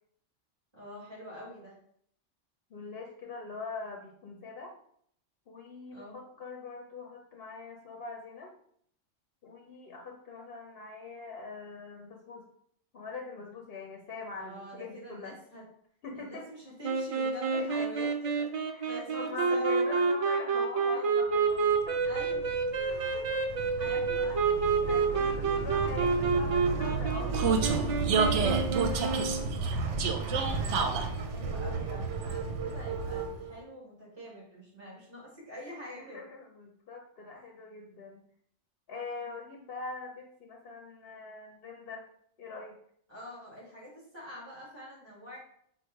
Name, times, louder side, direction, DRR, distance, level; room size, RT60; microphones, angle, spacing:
voice 1, 0.7-1.8 5.9-6.2 14.4-15.7 16.1-18.5 18.8-20.0 20.7-21.1 22.0-22.5 22.9-23.5 23.8-24.5 30.2-36.2 43.1-45.4, equal, 20° right, -5 dB, 1.9 m, -45 dB
voice 2, 2.7-4.7 5.5-8.5 9.4-12.5 12.9-15.3 16.0-16.5 17.5-18.1 18.7-22.0 23.8-24.0 24.8-28.9 29.2-29.3 36.0-38.2 38.9-42.1 42.4-42.8, left 4 dB, 60° left, 0 dB, 0.9 m, -43 dB
sound 1, 16.8-29.5, right 4 dB, 60° right, 0.3 m, -29 dB
Vehicle, 21.7-33.6, right 4 dB, 80° right, 0.9 m, -31 dB
4.8 x 2.2 x 4.5 m, 0.65 s
omnidirectional pair, 1.2 m